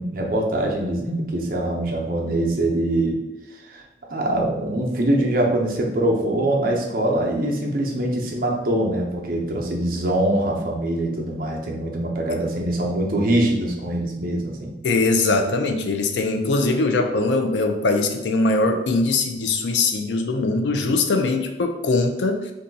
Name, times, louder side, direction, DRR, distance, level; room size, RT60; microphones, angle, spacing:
voice 1, 0.0-3.2 3.5-3.8 4.1-14.7, right 1 dB, 50° right, 0 dB, 0.6 m, -23 dB
voice 2, 14.8-22.5, left 3 dB, 75° left, 6 dB, 0.4 m, -21 dB
2.6 x 2.3 x 3.9 m, 1.0 s
head